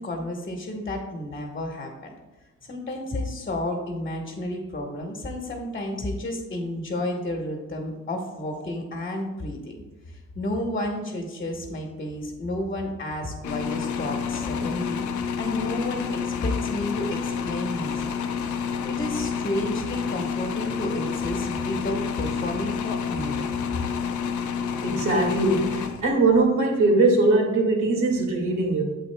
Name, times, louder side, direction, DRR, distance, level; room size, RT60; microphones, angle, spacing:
voice 1, 0.0-2.1 2.7-9.8 10.3-18.2 18.9-23.5, left 1 dB, 30° left, 1 dB, 1.3 m, -31 dB
sound 1, 13.4-26.4, left 6 dB, 75° left, 0.7 m, -29 dB
voice 2, 24.8-28.8, right 2 dB, 70° right, 1 dB, 2.1 m, -21 dB
8.7 x 7.5 x 2.3 m, 1.1 s
cardioid pair, 90°, 30 cm